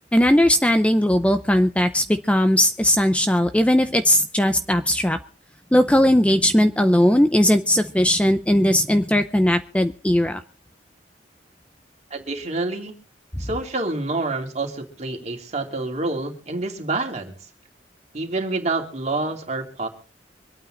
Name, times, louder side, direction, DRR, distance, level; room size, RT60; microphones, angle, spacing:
voice 1, 0.1-5.2 5.7-10.4, left 1 dB, 5° left, 8 dB, 0.6 m, -18 dB
voice 2, 12.1-12.9 13.4-17.3 18.1-19.9, right 2 dB, 40° right, 2 dB, 2.8 m, -27 dB
25.0 x 9.1 x 3.9 m, 0.40 s
head